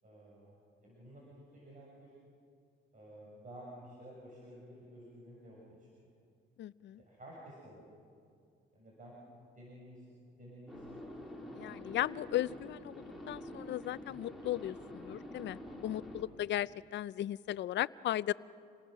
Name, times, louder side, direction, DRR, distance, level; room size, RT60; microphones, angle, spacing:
voice 1, 0.0-2.1 2.9-6.1 7.0-7.9 8.7-10.9 11.2-11.7 16.0-16.4, right 1 dB, 40° right, -4 dB, 6.3 m, -53 dB
voice 2, 6.6-7.0 11.5-18.3, left 13 dB, 65° left, 19 dB, 0.5 m, -36 dB
sound 1, 10.7-16.2, left 1 dB, ahead, 3.7 m, -47 dB
28.0 x 19.0 x 6.5 m, 2.4 s
cardioid pair, 90°, 20 cm